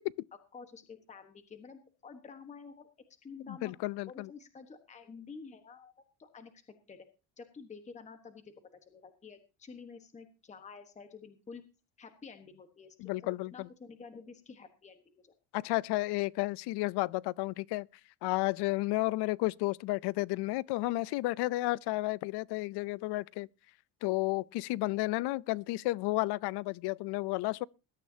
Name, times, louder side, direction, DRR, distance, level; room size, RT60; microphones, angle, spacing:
voice 1, 0.5-2.9 3.2-3.7 4.1-5.9 6.2-6.5 6.9-7.1 7.4-11.6 12.0-15.3, left 5 dB, 15° left, 1.3 m, -50 dB
voice 2, 3.5-4.3 13.0-13.7 15.5-17.9 18.2-23.5 24.0-27.7, left 20 dB, 80° left, 0.6 m, -32 dB
21.0 x 12.5 x 2.8 m
cardioid pair, 175°, 40 cm